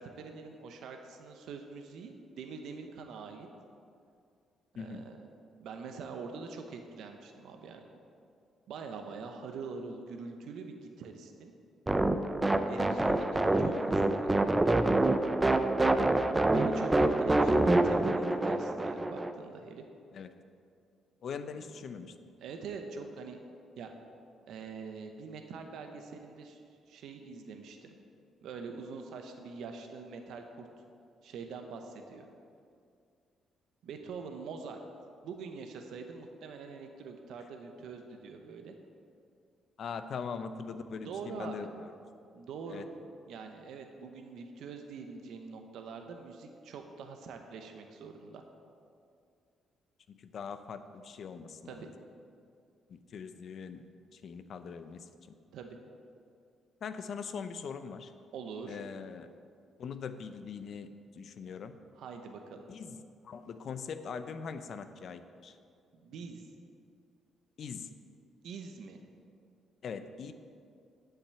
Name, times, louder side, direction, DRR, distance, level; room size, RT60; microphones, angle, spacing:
voice 1, 0.0-3.5 4.8-5.2 5.6-7.9 8.7-11.5 12.7-14.5 16.5-19.8 21.6-21.7 22.4-23.4 23.8-23.9 24.5-26.6 26.9-28.0 28.4-30.7 31.2-32.2 33.8-34.8 35.2-38.7 41.0-41.7 42.3-42.8 43.3-48.4 51.7-51.9 55.5-55.8 58.3-58.8 62.0-62.7 66.0-66.5 68.4-69.0, right 5 dB, 80° right, 5 dB, 0.8 m, -44 dB
sound 1, 11.9-19.3, right 2 dB, 15° right, 0.5 m, -26 dB
voice 2, 15.8-16.4 20.1-20.3 21.2-22.1 39.8-41.7 42.7-42.9 50.1-51.9 52.9-53.8 54.1-55.1 56.8-58.1 58.7-59.3 59.8-60.9 61.2-61.8 62.7-65.6 67.6-67.9 69.8-70.3, left 6 dB, 60° left, 10 dB, 0.6 m, -41 dB
8.5 x 5.9 x 8.1 m, 2.4 s
cardioid pair, 90°, 0 cm